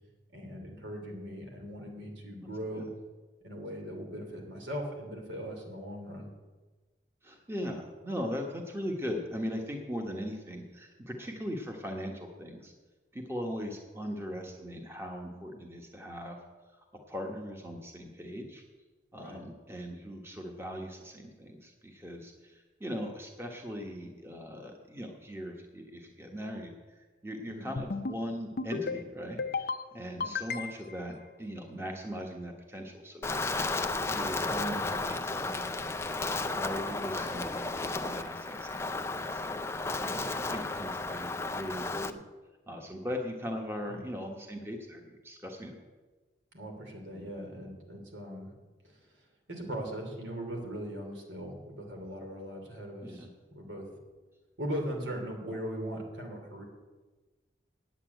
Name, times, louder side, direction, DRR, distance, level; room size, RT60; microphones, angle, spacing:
voice 1, 0.3-2.9 3.4-6.3 19.1-19.4 27.5-27.7 30.1-30.3 43.9-44.0 46.5-48.5 48.8-53.3 53.5-53.9 54.6-56.6, equal, 80° right, 1 dB, 2.8 m, -39 dB
voice 2, 7.2-12.7 13.1-16.4 17.1-18.6 19.1-26.7 27.2-29.7 29.9-33.8 34.1-35.9 36.5-39.6 40.0-42.2 42.7-45.7 53.0-53.3, equal, 15° right, 2 dB, 1.2 m, -39 dB
sound 1, 27.8-28.2 28.6-29.0 29.4-29.8 30.2-31.0, left 4 dB, 55° left, 0.6 m, -34 dB
Wind, 33.2-42.1, left 3 dB, 15° left, 0.4 m, -33 dB
8.8 x 8.4 x 9.0 m, 1.3 s
head